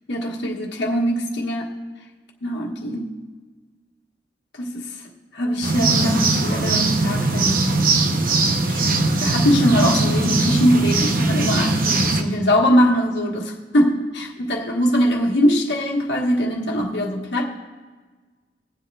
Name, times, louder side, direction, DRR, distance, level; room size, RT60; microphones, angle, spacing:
voice 1, 0.1-1.7 2.4-3.1 4.6-4.9 5.3-7.7 8.7-17.5, equal, 75° left, -1 dB, 1.4 m, -21 dB
sound 1, 5.6-12.2, right 3 dB, 55° right, 0.8 m, -20 dB
21.5 x 7.8 x 2.4 m, 1.4 s
head